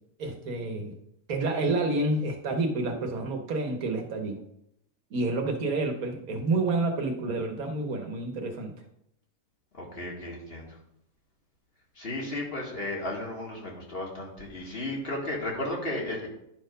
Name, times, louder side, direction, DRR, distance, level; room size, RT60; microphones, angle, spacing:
voice 1, 0.2-1.0 1.3-4.4 5.1-8.7, right 2 dB, 85° right, 4 dB, 1.6 m, -29 dB
voice 2, 9.7-10.8 12.0-16.3, left 1 dB, 45° left, -2 dB, 2.0 m, -34 dB
10.5 x 4.3 x 5.2 m, 0.77 s
omnidirectional pair, 1.5 m